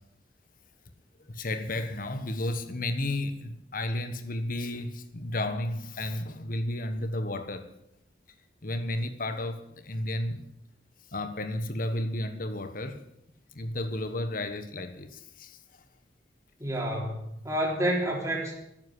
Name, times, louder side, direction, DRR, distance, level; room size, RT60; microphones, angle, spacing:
voice 1, 1.3-7.7 8.6-10.4 11.1-13.0 13.5-15.6, left 1 dB, 50° left, 1.3 m, -32 dB
voice 2, 16.6-18.5, right 1 dB, 15° right, 3.9 m, -29 dB
13.5 x 9.8 x 10.0 m
head